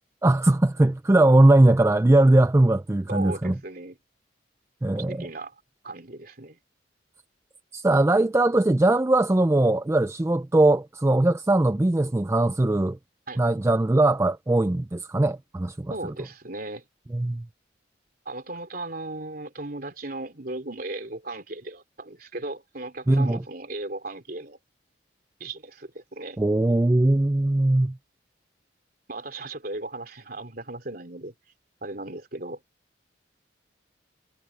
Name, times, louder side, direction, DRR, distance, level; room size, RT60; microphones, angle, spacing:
voice 1, 0.2-3.5 4.8-5.3 7.7-13.0 13.4-15.9 17.1-17.4 23.1-23.4 26.4-28.0, right 2 dB, 15° right, 0.4 m, -20 dB
voice 2, 3.1-4.0 4.9-5.5 5.8-6.6 13.3-13.4 15.9-16.8 18.2-24.6 25.4-26.4 29.1-31.3 31.8-32.6, right 2 dB, 50° right, 3.5 m, -36 dB
head